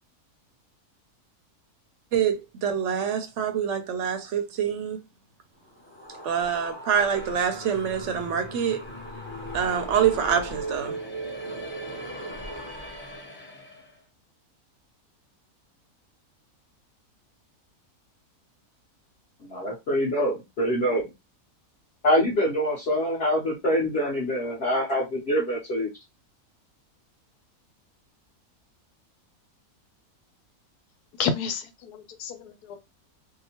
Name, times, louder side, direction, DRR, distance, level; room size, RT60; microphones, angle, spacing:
voice 1, 2.1-5.0 6.2-8.8 9.5-11.0, right 8 dB, 65° right, 0.7 m, -26 dB
sound 1, 5.6-13.9, right 1 dB, 15° left, 0.4 m, -38 dB
voice 2, 19.4-21.1 22.0-25.9, equal, 50° left, 0.9 m, -25 dB
voice 3, 31.2-32.8, left 6 dB, 90° left, 1.2 m, -30 dB
2.8 x 2.1 x 2.8 m
omnidirectional pair, 1.6 m